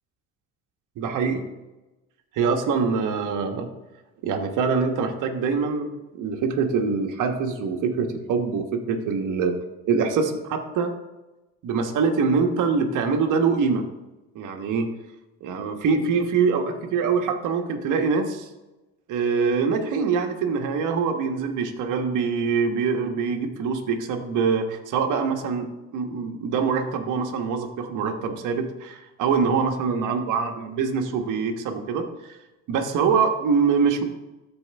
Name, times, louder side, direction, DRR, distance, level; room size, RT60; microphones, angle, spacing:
voice 1, 1.0-1.4 2.3-3.7 4.2-9.6 9.9-10.9 11.6-13.9 14.3-14.9 15.4-18.5 19.1-32.0 32.7-34.0, right 5 dB, 65° right, 5 dB, 1.3 m, -24 dB
13.0 x 4.5 x 3.4 m, 1.0 s
supercardioid pair, 80°, 34 cm